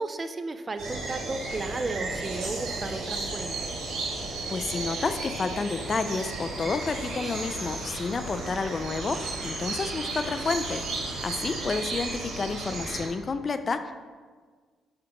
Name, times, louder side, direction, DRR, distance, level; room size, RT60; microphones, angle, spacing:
voice 1, 0.0-3.7, right 3 dB, 30° right, 9 dB, 0.4 m, -34 dB
sound 1, 0.8-13.1, right 3 dB, 80° right, 1.6 m, -34 dB
voice 2, 4.5-10.9 11.2-13.9, left 4 dB, 40° left, 9 dB, 0.4 m, -30 dB
7.7 x 2.9 x 5.1 m, 1.5 s
cardioid pair, 90°, 0 cm